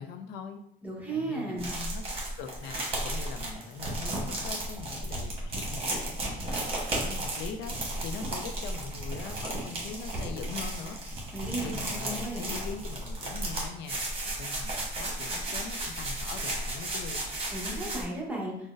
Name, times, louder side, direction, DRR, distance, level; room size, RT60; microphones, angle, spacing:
voice 1, 0.0-0.6 1.1-2.0 2.4-11.0 11.6-14.0 14.4-17.2, left 5 dB, 85° left, 8 dB, 0.4 m, -42 dB
voice 2, 0.8-1.7 11.3-12.5 17.5-18.5, right 2 dB, 10° right, -3 dB, 0.9 m, -35 dB
sound 1, 1.6-18.0, right 1 dB, 35° right, 1.1 m, -34 dB
3.8 x 2.1 x 2.5 m, 0.79 s
cardioid pair, 110°, 17 cm